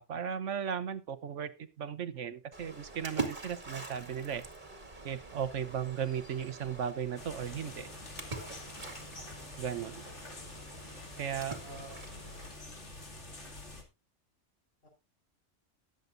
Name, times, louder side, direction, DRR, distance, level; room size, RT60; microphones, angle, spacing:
voice 1, 0.0-1.5 1.8-4.4 5.0-7.9 9.6-10.0 11.2-11.6, right 8 dB, 80° right, 12 dB, 1.3 m, -36 dB
Splash splatter, 2.5-12.5, right 3 dB, 40° right, 2.3 m, -44 dB
sound 1, 7.2-13.8, left 2 dB, 70° left, 2.9 m, -47 dB
voice 2, 11.6-12.1 12.5-12.8 14.8-14.9, right 2 dB, 50° left, 0 dB, 4.8 m, -51 dB
20.0 x 8.0 x 2.6 m, 0.25 s
omnidirectional pair, 1.2 m